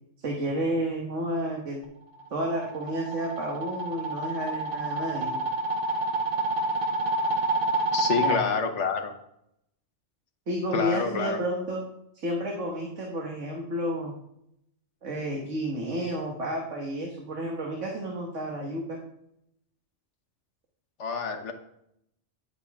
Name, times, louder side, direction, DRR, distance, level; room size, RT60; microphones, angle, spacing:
voice 1, 0.2-1.8 2.3-5.4 8.2-8.4 10.5-11.8 12.1-14.1 15.0-19.0, equal, 85° right, 0 dB, 1.8 m, -31 dB
sound 1, 2.2-8.4, right 2 dB, 50° right, 1.3 m, -28 dB
voice 2, 7.9-9.1 10.7-11.4 21.0-21.5, left 5 dB, 75° left, 5 dB, 1.4 m, -28 dB
9.9 x 8.3 x 3.6 m, 0.76 s
omnidirectional pair, 1.2 m